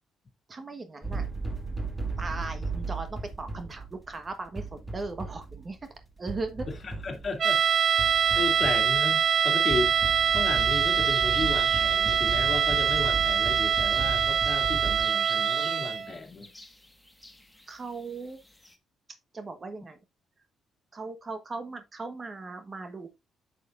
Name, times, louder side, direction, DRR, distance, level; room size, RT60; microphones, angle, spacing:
voice 1, 0.5-1.3 2.2-5.8 6.2-6.7 8.3-8.4 17.7-18.4 19.3-20.0 20.9-23.1, right 3 dB, 35° right, 1.2 m, -38 dB
sound 1, 1.0-15.1, right 3 dB, 10° right, 2.0 m, -36 dB
voice 2, 6.8-7.6 8.3-10.0 10.3-16.5, left 4 dB, 40° left, 2.2 m, -34 dB
sound 2, 7.4-16.1, right 8 dB, 50° right, 0.4 m, -24 dB
sound 3, 10.4-18.8, left 1 dB, 5° left, 1.4 m, -48 dB
8.4 x 6.3 x 2.5 m
cardioid pair, 90°, 0 cm